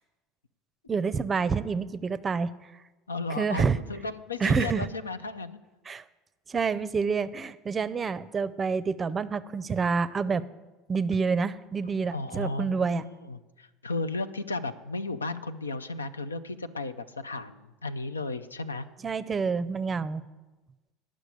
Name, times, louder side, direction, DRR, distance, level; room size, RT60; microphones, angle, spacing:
voice 1, 0.9-2.5 3.4-3.8 4.4-4.9 5.9-6.0 6.5-10.4 10.9-13.1 19.0-20.2, right 5 dB, 25° right, 15 dB, 0.5 m, -28 dB
voice 2, 3.1-5.6 12.1-18.8, left 3 dB, 85° left, 12 dB, 0.4 m, -34 dB
10.0 x 6.2 x 8.3 m, 1.2 s
figure-of-eight pair, 70°, 0 cm